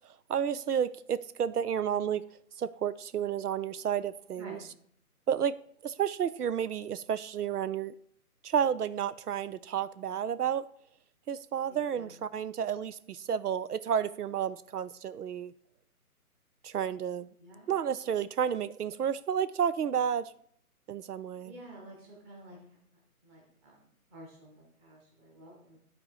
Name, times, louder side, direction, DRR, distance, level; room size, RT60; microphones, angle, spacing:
voice 1, 0.3-2.2 2.6-4.6 5.3-5.5 5.8-7.9 8.4-10.6 11.3-15.5 16.6-17.3 17.7-20.3 20.9-21.5, right 8 dB, 85° right, 15 dB, 0.6 m, -31 dB
voice 2, 4.3-4.7 11.7-12.1 17.4-17.7 21.4-22.8 23.2-25.8, right 1 dB, 10° right, -1 dB, 1.3 m, -51 dB
10.5 x 4.2 x 4.7 m, 0.65 s
figure-of-eight pair, 150°, 45 cm